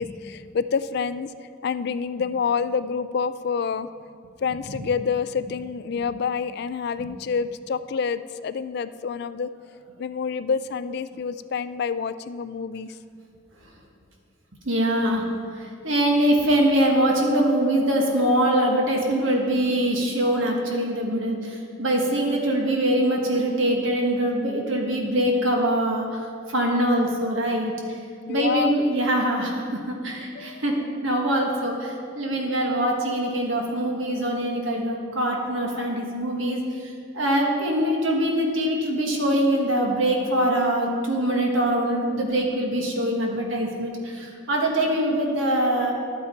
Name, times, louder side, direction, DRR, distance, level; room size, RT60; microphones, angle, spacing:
voice 1, 0.0-1.3 1.6-3.9 4.4-9.5 10.0-12.9 28.3-28.7 30.4-30.6, left 6 dB, 55° left, 12 dB, 0.3 m, -27 dB
voice 2, 14.7-27.7 28.3-45.9, right 1 dB, 80° right, 1 dB, 1.6 m, -23 dB
11.0 x 8.6 x 4.4 m, 2.3 s
head